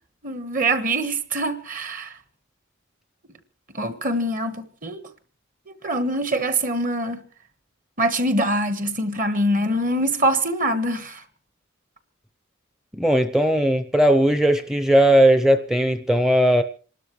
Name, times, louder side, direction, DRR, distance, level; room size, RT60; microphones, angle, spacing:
voice 1, 0.2-2.2 3.7-5.0 5.7-7.2 8.0-11.2, right 1 dB, 45° right, 1.4 m, -24 dB
voice 2, 12.9-16.6, right 1 dB, 5° right, 0.6 m, -18 dB
27.0 x 12.5 x 3.1 m
head